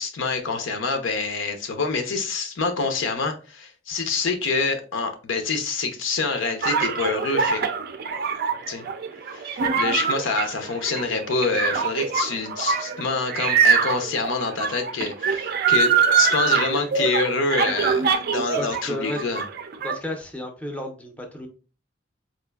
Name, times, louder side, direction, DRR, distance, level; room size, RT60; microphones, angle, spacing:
voice 1, 0.0-7.6 8.7-8.8 9.3-15.9 16.2-19.4, left 4 dB, 85° left, 0.7 m, -26 dB
sound 1, 6.6-18.8 19.1-20.0, right 6 dB, 55° right, 0.4 m, -23 dB
voice 2, 18.5-19.3 19.8-21.5, left 1 dB, 5° left, 0.5 m, -32 dB
4.2 x 2.5 x 2.3 m
head